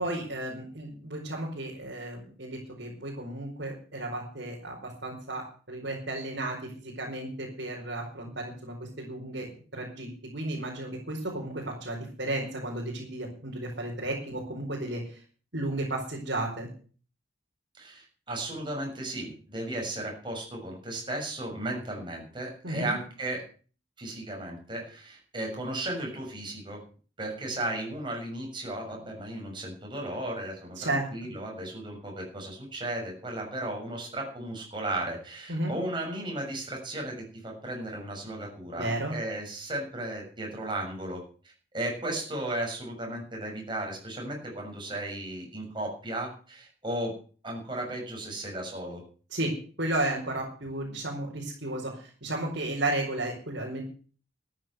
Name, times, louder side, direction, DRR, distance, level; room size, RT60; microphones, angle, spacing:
voice 1, 0.0-15.2 15.5-16.7 22.6-22.9 30.8-31.1 35.5-35.8 38.8-39.1 49.3-49.5 49.8-53.8, right 1 dB, 65° right, -4 dB, 4.9 m, -33 dB
voice 2, 17.8-23.4 24.0-26.8 27.2-41.2 41.7-47.2 47.4-49.0, right 1 dB, 25° right, 0 dB, 7.0 m, -35 dB
13.5 x 10.0 x 8.0 m, 0.40 s
head